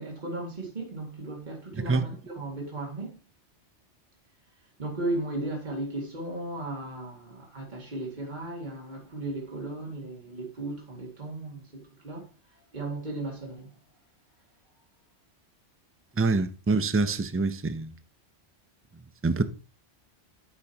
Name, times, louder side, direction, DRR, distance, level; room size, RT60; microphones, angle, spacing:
voice 1, 0.0-3.2 4.8-12.3 12.7-13.7, right 2 dB, 40° right, 2.3 m, -36 dB
voice 2, 16.2-17.9 19.2-19.4, right 3 dB, 20° right, 0.4 m, -25 dB
9.4 x 8.1 x 2.9 m
omnidirectional pair, 1.2 m